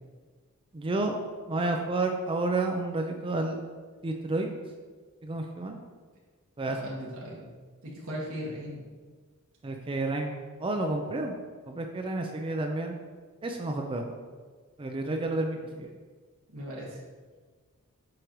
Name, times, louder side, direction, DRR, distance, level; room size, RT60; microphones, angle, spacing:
voice 1, 0.7-1.1 1.5-3.6 4.0-4.5 5.2-5.8 6.6-6.8 9.6-10.4 10.6-11.4 11.7-12.9 13.4-14.0 14.8-15.9, right 2 dB, 25° right, 3 dB, 0.4 m, -30 dB
voice 2, 6.7-7.5 7.8-8.9 16.5-17.0, equal, 65° right, -5 dB, 1.6 m, -38 dB
7.7 x 5.2 x 3.0 m, 1.4 s
head